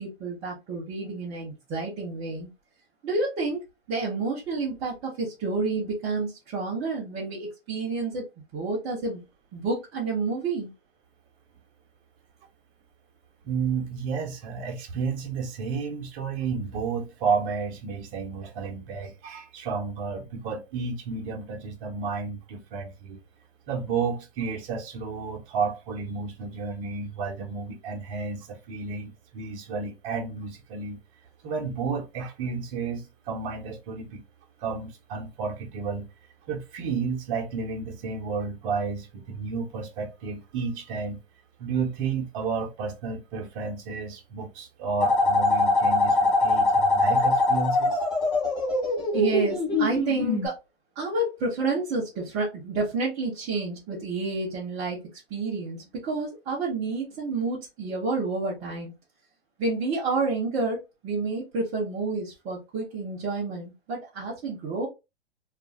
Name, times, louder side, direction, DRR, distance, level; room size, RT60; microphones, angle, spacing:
voice 1, 0.0-2.5 3.0-3.6 3.9-8.3 8.5-9.2 9.5-10.7 49.1-50.5 51.0-58.9 59.6-64.9, right 3 dB, 10° right, 0.3 m, -29 dB
voice 2, 13.4-23.2 23.7-31.0 31.4-34.2 34.6-36.1 36.5-41.2 41.6-48.0, right 5 dB, 30° right, 0.7 m, -31 dB
sound 1, 45.0-50.5, left 2 dB, 15° left, 0.8 m, -23 dB
2.4 x 2.4 x 3.0 m
hypercardioid pair, 135°, 32 cm